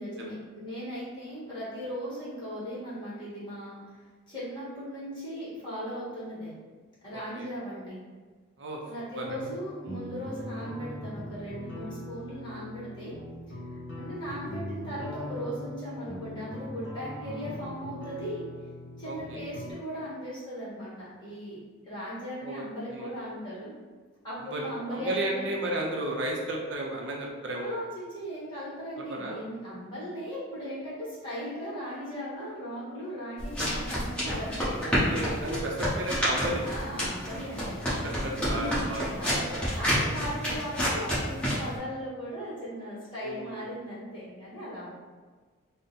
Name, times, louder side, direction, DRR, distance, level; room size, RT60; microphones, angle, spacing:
voice 1, 0.0-3.8 4.3-6.5 7.0-8.0 8.9-13.1 13.7-18.4 19.0-21.6 21.9-23.7 24.2-25.4 27.6-35.3 36.6-38.9 39.1-44.9, equal, 25° left, -9 dB, 1.5 m, -38 dB
voice 2, 7.1-7.5 8.6-8.8 9.2-9.4 9.8-10.0 19.0-19.4 22.4-23.1 24.4-27.8 29.0-29.4 34.8-36.7 38.0-39.0 39.3-39.7 43.2-43.7, right 1 dB, 60° right, -1 dB, 0.5 m, -34 dB
sound 1, 9.2-19.7, equal, 60° left, 0.9 m, -40 dB
sound 2, 33.4-41.7, equal, 5° left, 1.1 m, -29 dB
3.8 x 2.0 x 4.0 m, 1.4 s
head